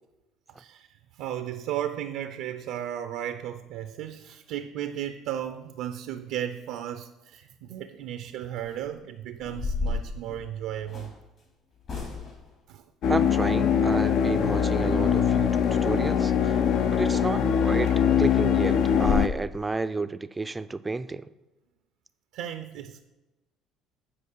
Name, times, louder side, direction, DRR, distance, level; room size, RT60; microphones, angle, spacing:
voice 1, 0.6-11.1 12.7-12.8 16.7-16.8 22.3-23.0, right 11 dB, 80° right, 9 dB, 0.5 m, -35 dB
sound 1, 8.6-8.8 9.4-11.2 11.8-12.5 17.0-17.2 17.6-17.7 18.1-18.2 18.6-18.7 19.0-19.3, left 3 dB, 50° left, 3.1 m, -32 dB
sound 2, 13.0-19.3, left 7 dB, 65° left, 0.6 m, -22 dB
voice 2, 13.1-21.3, right 3 dB, 15° right, 13 dB, 0.4 m, -31 dB
8.5 x 4.7 x 5.5 m, 1.1 s
cardioid pair, 100°, 0 cm